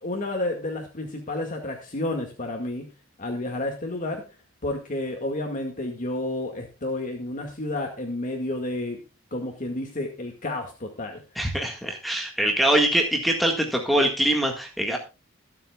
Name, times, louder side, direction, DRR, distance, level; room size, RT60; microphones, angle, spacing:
voice 1, 0.0-2.8 3.2-4.2 4.6-9.0 9.3-11.2, left 2 dB, 40° left, 2 dB, 2.0 m, -30 dB
voice 2, 11.4-15.0, right 1 dB, ahead, 2 dB, 1.7 m, -23 dB
22.5 x 7.8 x 2.4 m, 0.30 s
head